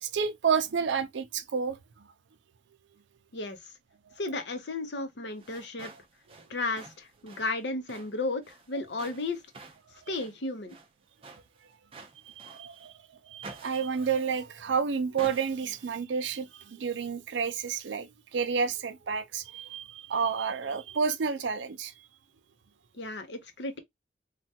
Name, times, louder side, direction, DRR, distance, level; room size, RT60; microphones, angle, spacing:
voice 1, 0.0-1.8 7.3-7.4 12.3-12.9 13.3-21.9, right 6 dB, 75° right, 0.5 m, -30 dB
voice 2, 4.2-5.9 6.5-9.4 10.1-10.8 23.0-23.8, left 2 dB, 65° left, 0.7 m, -34 dB
sound 1, 5.3-12.9 13.4-14.7 15.2-15.9, right 3 dB, 30° right, 0.5 m, -50 dB
3.3 x 2.2 x 2.7 m
head